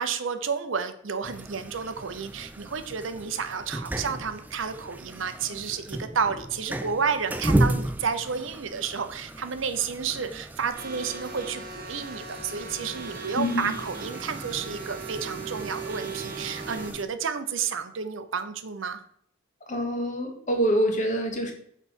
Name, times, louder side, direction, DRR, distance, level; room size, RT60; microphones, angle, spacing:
voice 1, 0.0-19.0, right 6 dB, 75° right, 9 dB, 0.7 m, -31 dB
sound 1, 1.2-17.0, right 1 dB, 10° right, 0.3 m, -34 dB
sound 2, 10.8-16.9, right 5 dB, 50° right, 1.1 m, -39 dB
voice 2, 13.3-13.8 19.7-21.5, equal, 40° left, 3 dB, 1.2 m, -26 dB
6.3 x 4.1 x 5.3 m, 0.66 s
head